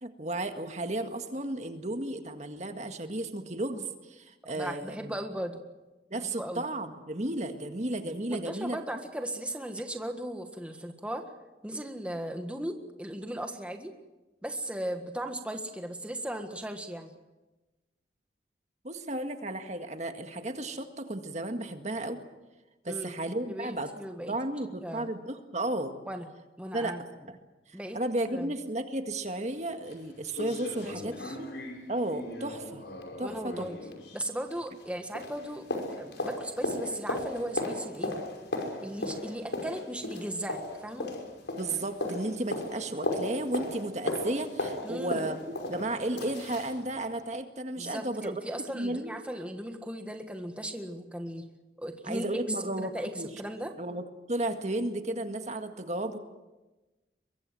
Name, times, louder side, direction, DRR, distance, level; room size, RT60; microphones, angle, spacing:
voice 1, 0.0-5.1 6.1-8.8 18.8-22.2 22.8-23.9 24.3-25.9 26.7-27.0 27.3-27.4 27.7-31.5 31.9-32.8 33.2-33.7 41.6-48.4 48.7-49.1 52.1-53.3 53.8-54.0 54.3-56.2, right 1 dB, 40° right, 6 dB, 1.8 m, -33 dB
voice 2, 4.5-5.6 6.1-6.6 8.3-11.2 11.6-13.9 14.4-17.1 22.9-23.1 23.5-24.4 24.8-25.1 26.1-26.3 26.6-27.0 27.7-28.0 28.3-28.5 30.8-31.4 33.2-33.8 34.1-35.7 36.0-38.2 38.8-41.1 44.8-45.3 47.8-51.5 51.8-53.7, right 1 dB, 5° right, 5 dB, 1.6 m, -37 dB
sound 1, 29.5-29.6 29.9-30.0 30.3-34.9 35.2-46.8 47.1-47.2, left 1 dB, 80° left, 5.8 m, -36 dB
23.5 x 23.0 x 7.7 m, 1.1 s
head